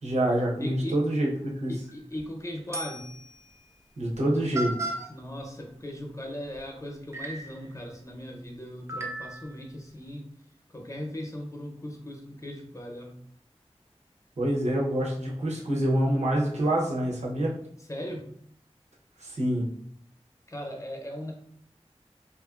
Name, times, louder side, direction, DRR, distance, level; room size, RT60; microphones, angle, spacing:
voice 1, 0.0-1.7 4.0-4.9 14.4-17.5 19.2-19.6, right 1 dB, 80° right, -4 dB, 0.7 m, -26 dB
voice 2, 0.6-1.0 1.7-3.1 5.1-10.3 10.7-13.2 17.9-18.3 20.5-21.3, equal, 25° left, 1 dB, 0.6 m, -38 dB
sound 1, 1.9-2.2 2.7-3.3 4.1-4.2 4.5-5.1 6.5-6.6 7.1-7.6 8.9-9.6, right 2 dB, 25° right, 0.5 m, -35 dB
2.7 x 2.4 x 2.4 m, 0.64 s
wide cardioid pair, 50°, 11 cm